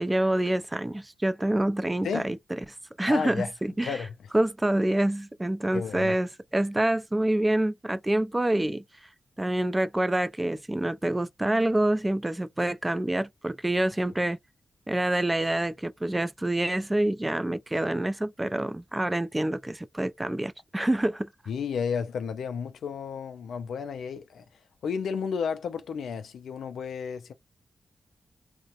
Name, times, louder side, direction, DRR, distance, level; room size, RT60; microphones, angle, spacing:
voice 1, 0.0-2.4 3.0-4.0 4.3-8.8 9.4-14.4 14.9-21.3, right 1 dB, 20° right, 0.3 m, -27 dB
voice 2, 3.1-3.5 3.8-4.1 5.7-6.2 21.5-24.4 24.8-27.3, left 6 dB, 90° left, 0.3 m, -32 dB
2.4 x 2.0 x 2.8 m
cardioid pair, 55°, 0 cm